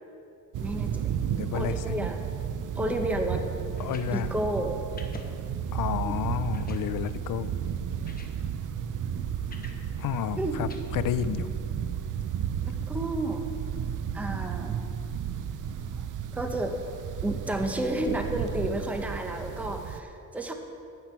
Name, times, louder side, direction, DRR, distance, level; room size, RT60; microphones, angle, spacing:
sound 1, 0.5-20.0, right 8 dB, 60° right, 0.6 m, -33 dB
voice 1, 0.6-1.1 1.5-2.2 2.8-3.4 4.1-4.8 6.0-6.2 10.4-10.7 12.6-13.5 14.1-14.8 16.3-16.8 17.2-20.5, right 1 dB, 5° right, 4 dB, 0.7 m, -31 dB
voice 2, 1.4-2.0 3.8-4.3 5.7-7.5 10.0-11.5, left 10 dB, 65° left, 13 dB, 0.5 m, -31 dB
sound 2, 3.7-4.1 5.0-5.3 5.8-5.9 6.5-6.9 7.7-7.8 8.0-8.3 9.5-9.8 10.7-10.8, left 3 dB, 25° left, 1.0 m, -46 dB
12.0 x 8.7 x 4.4 m, 2.7 s
cardioid pair, 115°, 35 cm